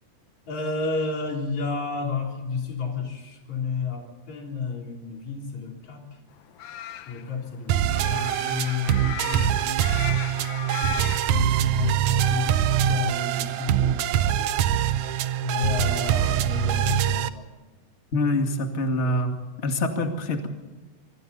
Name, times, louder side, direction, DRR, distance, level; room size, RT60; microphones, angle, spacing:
voice 1, 0.5-6.0 7.1-9.7 10.6-14.5 15.4-17.5 19.0-19.1, left 4 dB, 50° left, 1 dB, 5.0 m, -31 dB
sound 1, 6.4-11.5, left 11 dB, 75° left, 2.8 m, -37 dB
sound 2, 7.7-17.3, right 11 dB, 75° right, 1.7 m, -24 dB
voice 2, 18.1-19.4 19.6-20.5, left 1 dB, 25° left, 4 dB, 1.8 m, -25 dB
25.0 x 24.5 x 4.2 m, 1.2 s
omnidirectional pair, 4.2 m